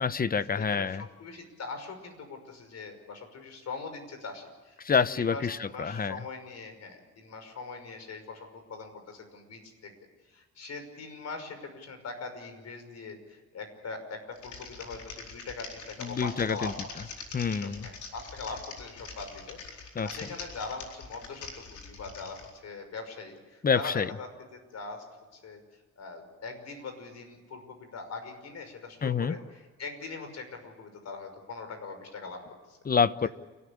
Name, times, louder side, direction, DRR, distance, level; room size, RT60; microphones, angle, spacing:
voice 1, 0.0-1.0 4.8-6.2 16.0-16.7 17.3-17.9 19.9-20.1 23.6-24.1 29.0-29.3 32.8-33.3, left 6 dB, 30° left, 16 dB, 0.9 m, -27 dB
voice 2, 0.6-4.8 5.1-9.9 10.3-16.8 17.0-17.1 17.4-25.0 25.3-25.6 26.0-32.8 33.2-33.3, left 4 dB, 60° left, 7 dB, 5.8 m, -42 dB
Typing, 14.3-22.5, left 4 dB, 75° left, 4.4 m, -44 dB
29.0 x 13.5 x 8.8 m, 1.3 s
cardioid pair, 90°, 30 cm